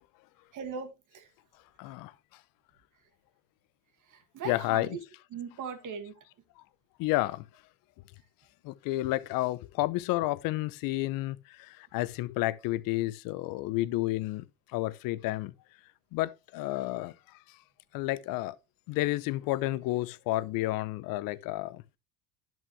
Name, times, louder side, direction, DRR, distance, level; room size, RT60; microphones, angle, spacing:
voice 1, 0.5-1.3 4.1-5.0 5.3-6.1, right 6 dB, 45° right, 2.1 m, -39 dB
voice 2, 1.8-2.1 4.4-5.0 7.0-7.5 8.6-14.4 14.7-15.5 16.1-17.1 17.9-18.6 18.9-21.8, left 17 dB, 55° left, 0.7 m, -31 dB
10.5 x 6.2 x 3.2 m
hypercardioid pair, 85°, 41 cm